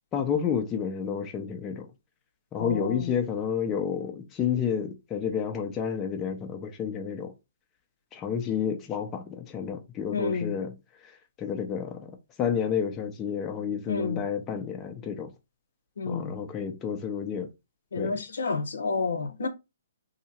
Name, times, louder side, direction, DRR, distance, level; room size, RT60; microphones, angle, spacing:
voice 1, 0.1-1.9 2.5-7.3 8.1-10.7 11.4-12.1 12.4-15.3 16.1-17.5 18.0-18.2, left 7 dB, 20° left, 0.6 m, -30 dB
voice 2, 2.6-3.1 10.1-10.6 13.9-14.3 16.0-16.3 17.9-19.5, left 4 dB, 80° left, 0.7 m, -30 dB
2.8 x 2.7 x 4.3 m
hypercardioid pair, 140°, 0 cm